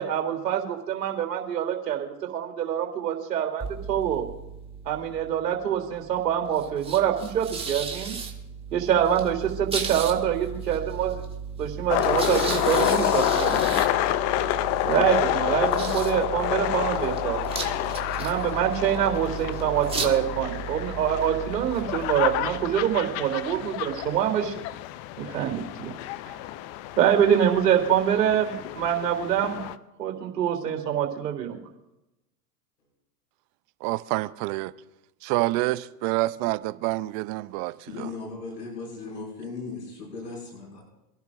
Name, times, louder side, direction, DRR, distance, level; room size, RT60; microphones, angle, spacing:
voice 1, 0.0-4.3 4.8-8.1 8.7-11.2 11.6-13.7 14.8-17.4 18.2-24.5 25.2-25.9 27.0-29.6 30.0-31.6, right 9 dB, 80° right, 3.3 m, -25 dB
sound 1, 3.6-23.5, right 5 dB, 10° right, 1.7 m, -36 dB
sound 2, 11.9-29.8, left 14 dB, 35° left, 0.5 m, -28 dB
voice 2, 33.8-34.7 35.2-37.7, right 19 dB, 40° right, 0.6 m, -27 dB
voice 3, 37.9-40.8, left 4 dB, 90° left, 6.2 m, -37 dB
26.0 x 11.5 x 2.5 m
hypercardioid pair, 110°, 47 cm